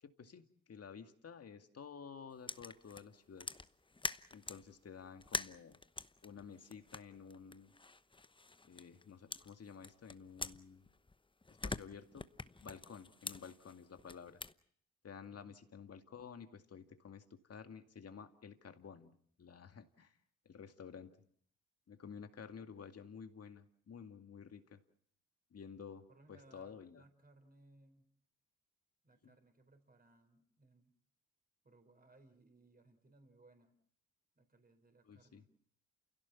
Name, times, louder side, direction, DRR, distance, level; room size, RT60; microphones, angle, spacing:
voice 1, 0.0-3.5 4.3-5.8 6.2-7.7 8.6-10.9 11.6-12.3 12.6-14.4 15.0-19.1 19.4-20.2 20.5-21.1 21.9-24.8 25.5-27.0 29.2-29.3 35.0-35.4, left 6 dB, 45° left, 7 dB, 2.2 m, -52 dB
sound 1, 2.5-4.7 5.2-9.0 9.3-11.2 11.4-14.5, left 3 dB, 15° left, 0.9 m, -46 dB
voice 2, 26.1-28.1 29.0-30.9 31.6-33.7 34.4-35.5, right 2 dB, 25° right, 6 dB, 4.5 m, -65 dB
29.0 x 16.5 x 7.2 m, 0.63 s
supercardioid pair, 60°, 35 cm